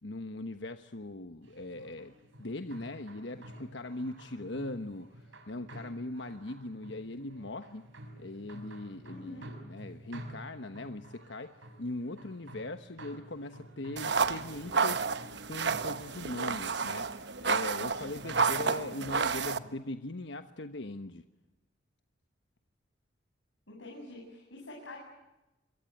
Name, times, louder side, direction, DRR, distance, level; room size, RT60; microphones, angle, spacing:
voice 1, 0.0-7.8 8.2-15.0 15.4-17.1 17.4-21.2, left 2 dB, 65° left, 9 dB, 1.2 m, -40 dB
sound 1, 1.4-19.7, right 1 dB, 90° right, 5.6 m, -51 dB
voice 2, 9.1-9.5 23.7-25.0, left 2 dB, 85° left, -1 dB, 7.8 m, -46 dB
sound 2, 14.0-19.6, right 5 dB, 60° right, 1.1 m, -31 dB
26.5 x 23.0 x 9.3 m, 0.97 s
head